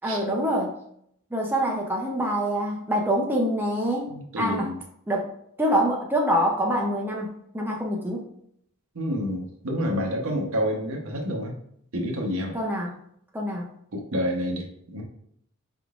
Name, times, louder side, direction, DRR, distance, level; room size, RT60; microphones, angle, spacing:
voice 1, 0.0-0.7 1.3-4.1 4.4-4.7 5.1-5.3 5.6-8.2 12.5-13.0 13.3-13.7, equal, 10° right, -1 dB, 0.6 m, -25 dB
voice 2, 4.1-4.8 8.9-11.5 11.9-12.6 13.9-15.0, equal, 65° right, 1 dB, 0.9 m, -28 dB
4.6 x 3.6 x 2.4 m, 0.70 s
head